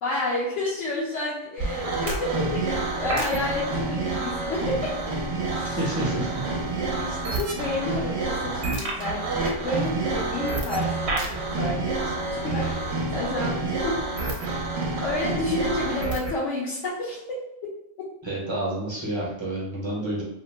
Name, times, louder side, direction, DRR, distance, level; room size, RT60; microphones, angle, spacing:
voice 1, 0.0-4.9 5.5-5.8 6.9-14.4 15.0-17.4 18.0-18.1, left 2 dB, 70° left, -7 dB, 1.0 m, -30 dB
sound 1, 1.6-16.4, right 3 dB, 60° right, 0.9 m, -28 dB
voice 2, 5.6-6.4 18.2-20.2, right 1 dB, 25° right, -5 dB, 0.7 m, -29 dB
2.9 x 2.1 x 3.1 m, 0.81 s
omnidirectional pair, 1.3 m